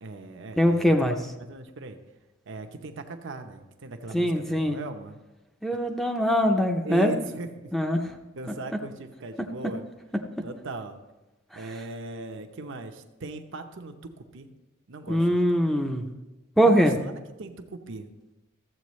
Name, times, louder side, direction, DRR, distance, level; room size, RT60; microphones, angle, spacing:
voice 1, 0.0-0.9 1.4-2.0 2.5-5.2 6.8-7.7 8.4-9.9 10.4-11.0 11.5-14.5 14.9-15.6 16.6-18.1, right 3 dB, 65° right, 6 dB, 0.8 m, -39 dB
voice 2, 0.6-1.2 4.1-4.8 5.6-7.1 7.7-8.0 15.1-16.1 16.6-16.9, equal, ahead, 4 dB, 0.6 m, -22 dB
13.5 x 7.7 x 3.1 m, 1.1 s
head